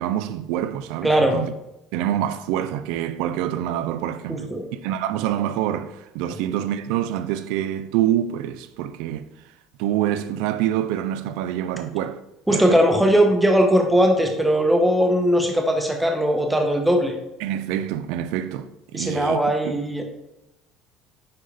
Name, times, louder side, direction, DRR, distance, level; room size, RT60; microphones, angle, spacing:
voice 1, 0.0-1.5 1.9-4.5 4.8-9.3 9.8-12.2 12.5-12.8 17.4-19.4 19.6-19.8, right 11 dB, 80° right, 0.5 m, -26 dB
voice 2, 1.0-1.4 4.3-4.6 12.5-17.1 18.9-20.0, equal, 5° right, 1.0 m, -19 dB
9.7 x 3.8 x 3.4 m
cardioid pair, 140°, 0 cm